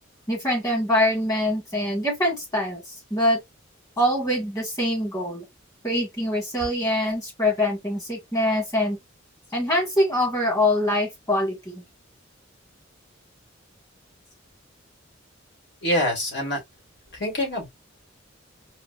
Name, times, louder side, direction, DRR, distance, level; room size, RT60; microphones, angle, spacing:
voice 1, 0.3-2.8 3.1-3.4 4.0-5.4 5.8-9.0 9.5-11.8, left 1 dB, 15° left, 1.6 m, -24 dB
voice 2, 15.8-16.6 17.2-17.7, left 1 dB, 60° left, 1.6 m, -25 dB
4.2 x 2.0 x 2.5 m
head